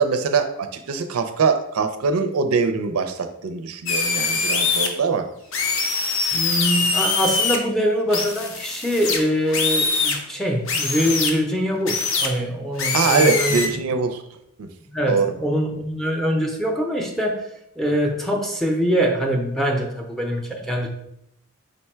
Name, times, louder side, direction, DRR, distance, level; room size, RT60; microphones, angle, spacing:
voice 1, 0.0-5.3 12.9-14.2 14.6-14.7 15.1-15.3, right 5 dB, 85° right, 8 dB, 0.4 m, -22 dB
sound 1, 3.9-4.9 5.5-7.6 8.1-10.2 10.7-11.3 11.9-12.3 12.8-13.7, left 4 dB, 65° left, 0.6 m, -23 dB
voice 2, 6.3-13.8 14.9-17.3 17.8-20.9, equal, ahead, 0 dB, 0.5 m, -23 dB
5.1 x 2.2 x 4.3 m, 0.80 s
head